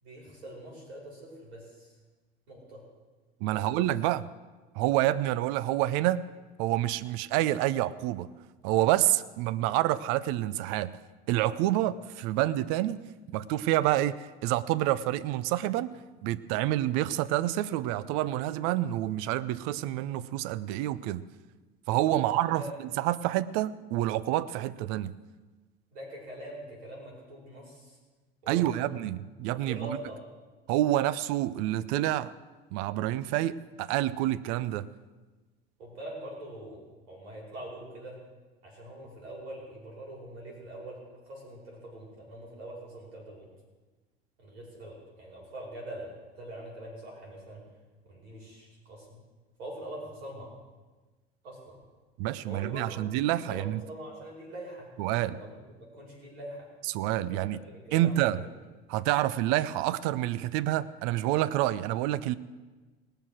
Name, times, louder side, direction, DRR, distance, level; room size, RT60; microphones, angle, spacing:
voice 1, 0.0-1.9 2.5-2.8 3.6-3.8 22.1-22.8 25.9-28.0 28.6-29.0 29.5-30.2 35.8-38.2 38.6-41.0 41.3-43.5 44.4-47.6 48.0-49.2 49.6-50.5 51.4-51.8 52.5-53.0 53.4-54.9 55.2-55.6 55.9-56.7 57.3-57.4 57.9-58.5, right 1 dB, 75° right, -2 dB, 5.2 m, -43 dB
voice 2, 3.4-4.3 4.8-6.2 6.6-8.3 8.6-10.9 11.3-13.0 13.3-15.9 16.2-21.2 21.9-22.6 23.0-25.1 28.5-30.0 30.7-32.3 32.7-34.9 52.2-53.8 55.0-55.4 56.9-57.6 57.9-58.4 58.9-62.3, right 14 dB, 55° right, 16 dB, 0.6 m, -28 dB
19.0 x 6.8 x 6.2 m, 1.3 s
hypercardioid pair, 75°, 32 cm